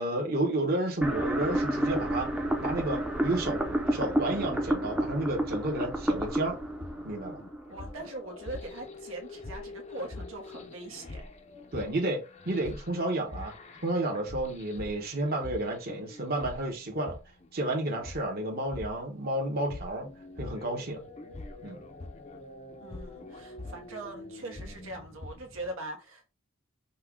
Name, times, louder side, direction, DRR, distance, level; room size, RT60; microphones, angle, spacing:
voice 1, 0.0-2.3 2.6-6.6 7.0-7.4 11.7-12.2 12.4-13.5 13.8-17.2 17.5-20.1 20.4-21.0 21.6-21.8, right 1 dB, 45° right, 1.1 m, -31 dB
sound 1, 1.0-8.0, right 1 dB, 5° right, 0.6 m, -30 dB
sound 2, 6.2-25.7, left 2 dB, 30° left, 0.6 m, -45 dB
voice 2, 7.7-11.2 22.8-26.3, right 2 dB, 80° right, 1.2 m, -41 dB
5.5 x 2.3 x 3.6 m
head